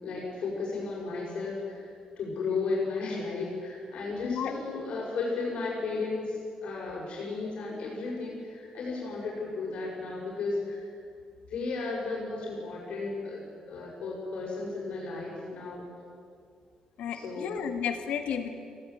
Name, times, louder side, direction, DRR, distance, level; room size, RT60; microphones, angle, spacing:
voice 1, 0.0-10.9 11.5-15.9 17.1-17.5, left 3 dB, 65° left, -4 dB, 6.5 m, -34 dB
voice 2, 4.2-4.5 17.0-18.5, left 8 dB, 85° left, 6 dB, 2.0 m, -32 dB
18.5 x 17.0 x 9.4 m, 2.3 s
cardioid pair, 135°, 2 cm